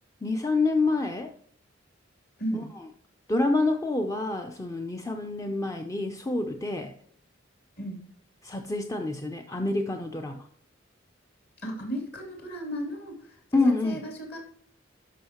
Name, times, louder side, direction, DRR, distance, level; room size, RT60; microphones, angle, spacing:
voice 1, 0.2-1.3 3.3-6.9 8.4-10.5 13.5-14.0, left 2 dB, 15° left, 5 dB, 0.4 m, -27 dB
voice 2, 2.4-2.7 7.8-8.0 11.6-14.4, right 1 dB, 50° left, 2 dB, 2.8 m, -34 dB
12.0 x 5.5 x 2.9 m, 0.63 s
head